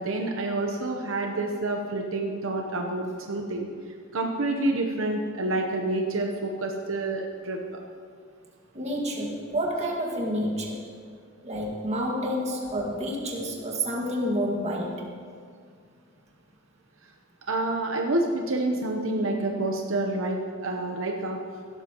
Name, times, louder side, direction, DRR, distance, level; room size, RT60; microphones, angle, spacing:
voice 1, 0.0-3.7 4.1-7.8 17.5-21.4, right 2 dB, 70° right, 1 dB, 0.9 m, -28 dB
voice 2, 8.7-10.8 11.4-15.1, equal, 35° right, -1 dB, 1.9 m, -29 dB
16.5 x 12.5 x 3.0 m, 2.1 s
head